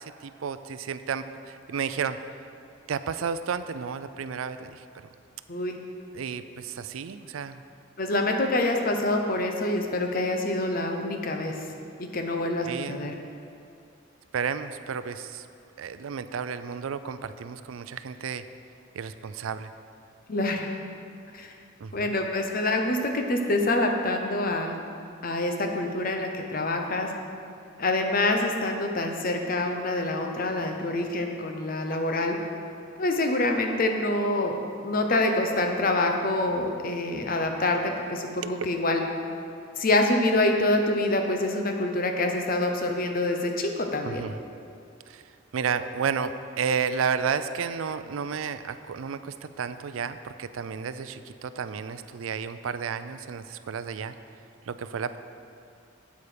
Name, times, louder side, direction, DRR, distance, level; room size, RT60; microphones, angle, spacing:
voice 1, 0.0-2.2 2.9-4.8 6.1-7.6 12.7-13.0 14.3-15.5 15.8-18.4 18.9-19.7 21.8-22.1 38.4-38.5 44.0-44.4 45.1-45.2 45.5-54.1 54.7-55.2, right 6 dB, 80° right, 12 dB, 0.4 m, -32 dB
voice 2, 8.0-11.5 12.0-13.1 20.3-20.7 21.3-21.5 21.9-24.8 25.2-27.1 27.8-32.4 33.0-34.6 34.8-39.0 39.8-44.2, left 2 dB, 45° left, 3 dB, 0.9 m, -26 dB
8.6 x 8.2 x 5.1 m, 2.5 s
head